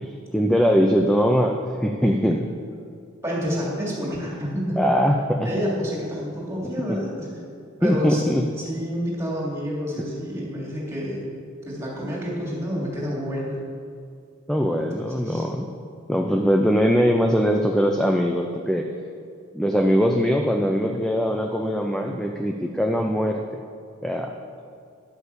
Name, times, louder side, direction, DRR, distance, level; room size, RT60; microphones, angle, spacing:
voice 1, 0.0-2.4 4.8-5.5 7.8-8.4 14.5-15.7 16.1-18.9 19.5-23.4 24.0-24.3, equal, 5° left, 2 dB, 0.5 m, -21 dB
voice 2, 3.2-4.8 5.4-7.3 7.8-8.2 8.6-11.2 11.7-13.6 14.7-14.9 15.2-15.4, equal, 15° right, -4 dB, 2.9 m, -28 dB
11.0 x 8.3 x 7.0 m, 2.3 s
head